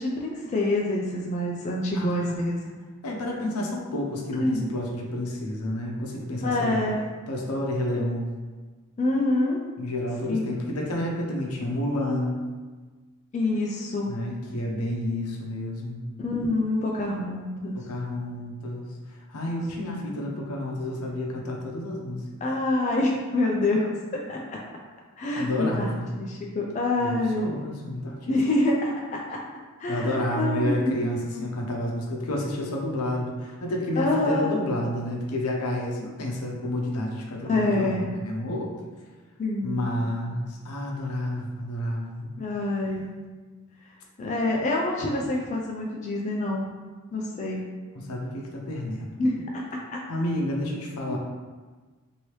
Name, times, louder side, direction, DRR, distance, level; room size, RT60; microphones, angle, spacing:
voice 1, 0.0-2.5 4.3-4.6 6.4-7.0 9.0-9.6 10.3-10.4 13.3-14.2 16.2-17.9 19.8-20.0 22.4-24.6 25.2-25.9 26.2-27.5 28.3-29.4 29.8-31.0 31.3-31.4 34.0-34.6 37.5-38.1 39.4-39.9 42.4-43.1 44.2-46.8 47.1-47.6 49.2-50.0 51.1-51.2, left 2 dB, 35° left, -2 dB, 0.3 m, -26 dB
voice 2, 1.9-2.4 3.0-6.8 7.3-8.3 9.8-12.4 14.1-16.1 17.7-22.3 25.3-26.1 27.0-28.3 29.9-38.7 39.6-42.3 48.0-49.1 50.1-51.2, left 1 dB, 80° left, -1 dB, 0.6 m, -30 dB
3.0 x 2.7 x 3.0 m, 1.4 s
head